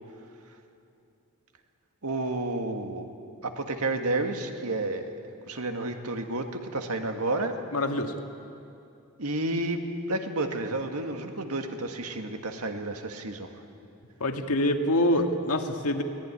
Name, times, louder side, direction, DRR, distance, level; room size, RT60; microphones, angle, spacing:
voice 1, 2.0-3.1 3.4-5.1 5.5-7.6 9.2-13.5, right 2 dB, 85° right, 5 dB, 1.9 m, -31 dB
voice 2, 7.7-8.1 14.2-16.0, left 1 dB, 85° left, 4 dB, 1.9 m, -25 dB
23.0 x 18.0 x 9.8 m, 2.7 s
head